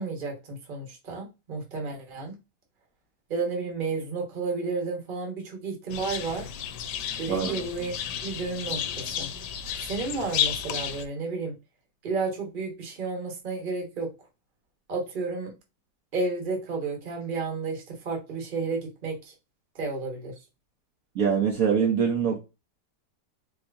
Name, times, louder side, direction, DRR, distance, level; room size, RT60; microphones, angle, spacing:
voice 1, 0.0-2.4 3.3-6.5 7.2-7.9 8.2-9.3 9.8-11.5 12.0-14.1 14.9-15.5 16.1-19.3 19.7-20.3, right 4 dB, 35° right, 1.2 m, -32 dB
sound 1, 5.9-11.0, left 9 dB, 90° left, 1.2 m, -32 dB
voice 2, 7.3-7.6 21.1-22.4, right 7 dB, 60° right, 1.2 m, -24 dB
4.6 x 2.8 x 2.6 m
omnidirectional pair, 1.8 m